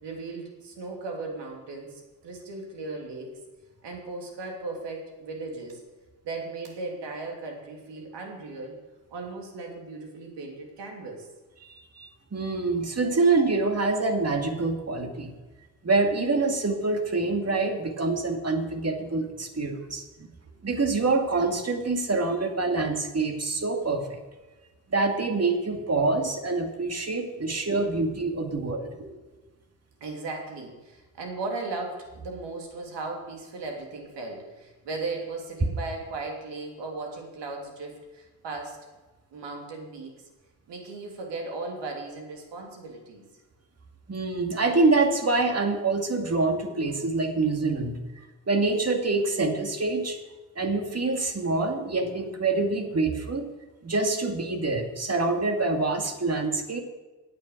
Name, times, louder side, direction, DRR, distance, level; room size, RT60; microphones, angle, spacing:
voice 1, 0.0-3.4 3.8-5.8 6.2-8.8 9.1-11.3 27.6-28.0 28.6-28.7 29.0-29.1 30.0-38.8 39.3-40.2 40.7-43.2, right 3 dB, 65° right, 1 dB, 2.9 m, -37 dB
voice 2, 11.6-15.3 15.8-20.3 20.6-24.2 24.9-28.8 44.1-48.0 48.5-50.2 50.6-53.5 53.8-56.8, right 3 dB, 35° right, 4 dB, 2.3 m, -26 dB
9.0 x 8.7 x 7.8 m, 1.2 s
hypercardioid pair, 45°, 45 cm